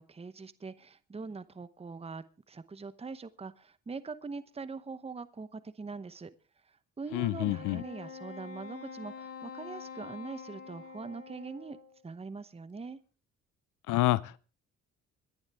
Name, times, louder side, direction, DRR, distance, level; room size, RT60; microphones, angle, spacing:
voice 1, 0.0-6.3 6.6-11.8 12.0-13.0, right 4 dB, 20° right, 0.9 m, -43 dB
voice 2, 7.1-7.8 13.9-14.4, left 17 dB, 85° left, 0.6 m, -28 dB
Wind instrument woodwind instrument, 7.4-12.0, left 5 dB, 50° left, 3.4 m, -46 dB
25.0 x 10.5 x 3.5 m
cardioid pair, 90°, 30 cm